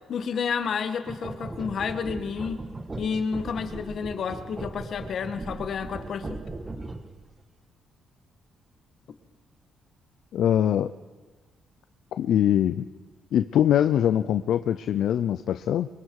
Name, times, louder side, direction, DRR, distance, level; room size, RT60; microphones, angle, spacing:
voice 1, 0.1-2.6 3.0-6.4, left 6 dB, 60° left, 9 dB, 1.7 m, -30 dB
sound 1, 1.0-7.2, right 2 dB, 25° right, 1.9 m, -38 dB
voice 2, 10.3-10.9 12.2-12.8 13.3-15.9, left 10 dB, 75° left, 11 dB, 0.6 m, -23 dB
23.5 x 23.5 x 4.8 m, 1.3 s
cardioid pair, 90°, 0 cm